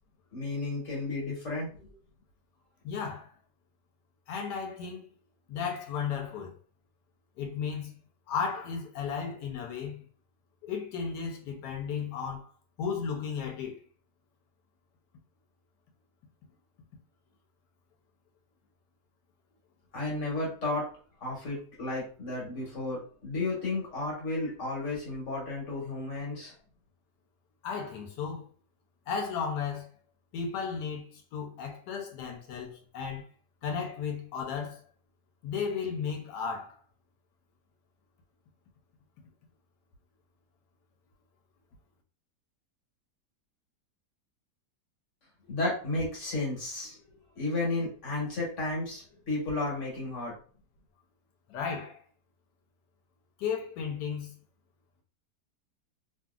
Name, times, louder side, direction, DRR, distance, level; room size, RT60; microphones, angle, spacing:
voice 1, 0.3-1.7 19.9-20.9 21.2-26.5 45.5-46.9 47.4-50.3, left 2 dB, 50° left, 1.3 m, -33 dB
voice 2, 2.8-3.3 4.3-5.1 5.5-6.5 7.4-7.9 8.3-10.0 10.6-12.5 12.8-13.8 27.6-28.5 29.1-29.9 30.3-33.2 33.6-34.8 35.4-36.8 51.5-52.0 53.4-54.3, left 6 dB, 85° left, 1.2 m, -34 dB
2.8 x 2.6 x 2.3 m
omnidirectional pair, 1.8 m